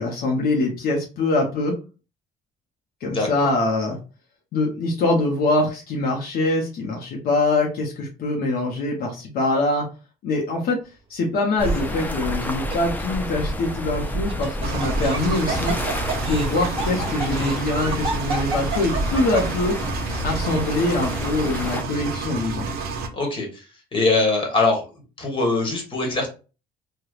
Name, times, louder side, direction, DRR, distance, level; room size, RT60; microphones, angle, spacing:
voice 1, 0.0-1.8 3.0-4.0 4.5-9.9 10.2-10.8 11.1-15.7 16.2-19.7 20.2-22.7, left 2 dB, 65° left, -1 dB, 0.8 m, -23 dB
sound 1, 11.6-21.8, equal, 10° left, 0.4 m, -29 dB
Laughter, 11.6-12.1 12.7-12.8 14.0-19.6, right 2 dB, 35° right, 1.0 m, -30 dB
Engine, 14.6-23.1, right 4 dB, 65° right, 0.6 m, -30 dB
voice 2, 23.1-23.6 23.9-24.9 25.2-26.3, left 3 dB, 30° left, 1 dB, 1.2 m, -22 dB
3.3 x 2.2 x 2.4 m, 0.33 s
cardioid pair, 110°, 17 cm